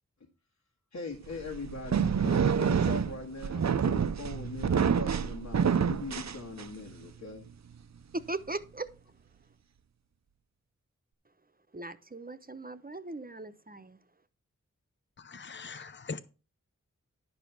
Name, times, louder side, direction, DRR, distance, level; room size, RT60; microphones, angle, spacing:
voice 1, 0.9-7.5, left 3 dB, 70° left, 1.8 m, -41 dB
sound 1, 1.3-6.9, right 7 dB, 60° right, 0.6 m, -28 dB
voice 2, 8.1-8.9 11.7-14.0, right 2 dB, 30° right, 0.9 m, -39 dB
voice 3, 15.2-16.2, left 4 dB, 35° left, 0.7 m, -41 dB
11.0 x 5.2 x 5.8 m
wide cardioid pair, 55°, 31 cm